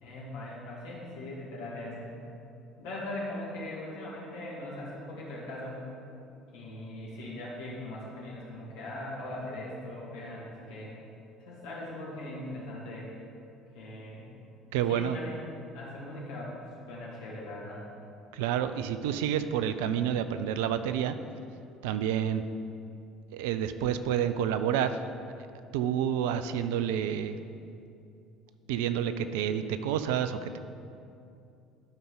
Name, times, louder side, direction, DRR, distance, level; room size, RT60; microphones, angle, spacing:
voice 1, 0.0-2.1 2.8-5.8 6.5-10.9 11.4-13.1 13.7-14.2 14.9-15.5 15.7-16.5 16.9-17.8, left 1 dB, 65° left, -5 dB, 2.1 m, -40 dB
voice 2, 14.7-15.2 18.3-21.2 21.8-22.4 23.3-25.1 25.7-27.4 28.7-30.6, right 9 dB, 65° right, 11 dB, 0.3 m, -29 dB
11.5 x 5.4 x 3.9 m, 2.6 s
figure-of-eight pair, 55°, 0 cm